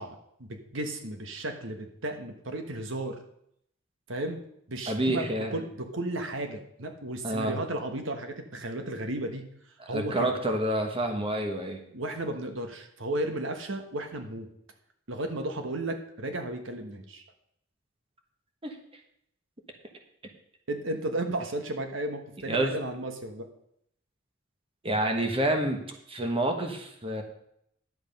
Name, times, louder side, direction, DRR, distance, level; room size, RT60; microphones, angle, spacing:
voice 1, 0.0-3.2 4.1-4.4 4.7-5.3 5.5-9.4 9.9-10.1 11.9-14.5 15.1-17.2 20.7-23.5, right 1 dB, 65° right, 6 dB, 1.3 m, -34 dB
voice 2, 4.9-5.5 7.2-7.6 9.8-11.8 18.6-18.7 22.5-22.7 24.8-27.2, right 1 dB, 25° right, 4 dB, 1.3 m, -28 dB
11.0 x 8.0 x 5.3 m, 0.71 s
head